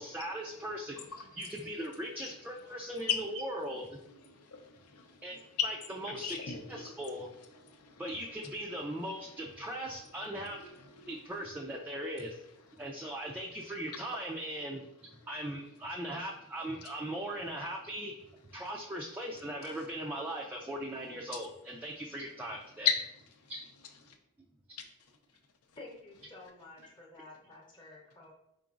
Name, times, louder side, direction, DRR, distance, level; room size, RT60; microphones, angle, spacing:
voice 1, 0.0-4.0 5.2-5.4 5.6-6.4 6.7-7.3 8.0-10.6 11.1-12.4 12.8-18.1 18.5-22.9 23.5-23.6, right 1 dB, 10° right, 0.3 m, -39 dB
voice 2, 2.7-3.2 4.3-5.2 6.1-6.9 7.7-8.0 10.6-11.1 22.8-23.0 24.1-24.2, left 8 dB, 80° left, 0.6 m, -35 dB
voice 3, 25.8-28.3, left 2 dB, 20° left, 0.7 m, -51 dB
5.0 x 3.7 x 2.4 m
head